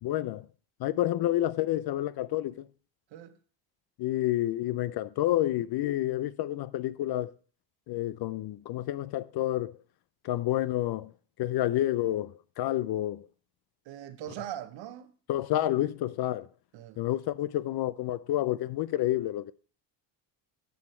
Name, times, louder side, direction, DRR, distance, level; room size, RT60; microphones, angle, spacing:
voice 1, 0.0-0.5 0.8-2.6 4.0-7.3 7.9-9.7 10.2-11.1 11.4-13.3 15.3-16.5 17.0-19.5, left 14 dB, 55° left, 0.5 m, -29 dB
voice 2, 13.9-15.1 16.7-17.0, right 12 dB, 70° right, 1.0 m, -41 dB
9.3 x 6.3 x 4.3 m
supercardioid pair, 85°, 47 cm